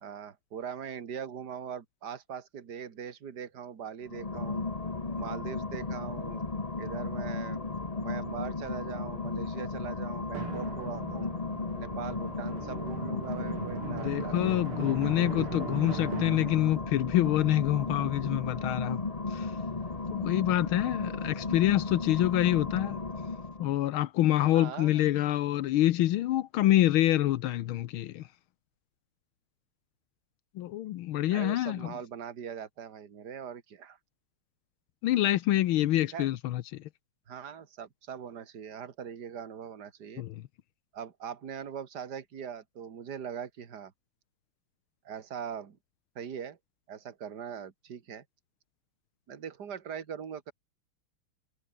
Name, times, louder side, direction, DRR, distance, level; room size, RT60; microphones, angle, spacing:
voice 1, 0.0-4.6 5.1-6.4 6.8-11.3 11.8-14.6 15.1-15.8 24.5-25.0 31.3-34.0 36.1-36.3 37.3-40.2 40.9-43.9 45.0-45.8 46.2-46.6 46.9-48.2 49.3-50.5, right 7 dB, 50° right, 2.4 m, -41 dB
sound 1, 4.0-23.8, left 3 dB, 20° left, 1.2 m, -35 dB
Drum, 10.3-18.6, right 6 dB, 85° right, 3.4 m, -41 dB
voice 2, 13.8-19.0 19.3-19.5 20.1-23.0 23.6-28.2 30.6-31.9 35.0-36.6 40.2-40.3, left 14 dB, 80° left, 1.6 m, -26 dB
omnidirectional pair, 2.3 m